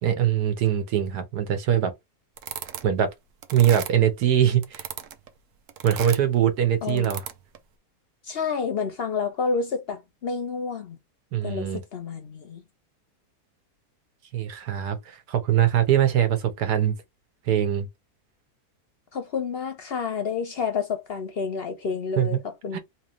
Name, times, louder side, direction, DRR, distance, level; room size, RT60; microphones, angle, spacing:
voice 1, 0.0-1.9 2.8-3.1 3.5-4.8 5.8-7.2 11.3-11.8 14.3-17.0 17.5-17.9 22.2-22.4 22.7-22.8, right 10 dB, 80° right, 1.5 m, -22 dB
sound 1, 2.4-3.0 3.4-4.2 4.6-5.3 5.7-6.4 6.9-7.6, right 9 dB, 65° right, 0.9 m, -36 dB
voice 2, 8.2-11.0 11.4-12.6 19.1-22.8, left 5 dB, 55° left, 0.7 m, -29 dB
3.2 x 3.0 x 3.1 m
omnidirectional pair, 1.7 m